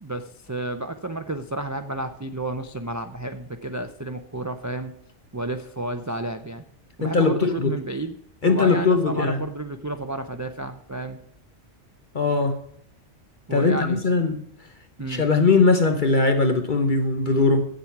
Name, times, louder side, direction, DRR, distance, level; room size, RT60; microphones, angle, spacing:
voice 1, 0.0-4.9 5.3-6.6 7.0-8.1 8.4-11.2 13.5-14.0 15.0-15.2, right 2 dB, 30° right, 8 dB, 0.3 m, -31 dB
voice 2, 7.0-7.7 8.4-9.4 12.1-12.6 13.5-14.4 15.1-17.7, left 3 dB, 45° left, 6 dB, 1.0 m, -20 dB
8.7 x 7.6 x 5.8 m, 0.69 s
omnidirectional pair, 1.2 m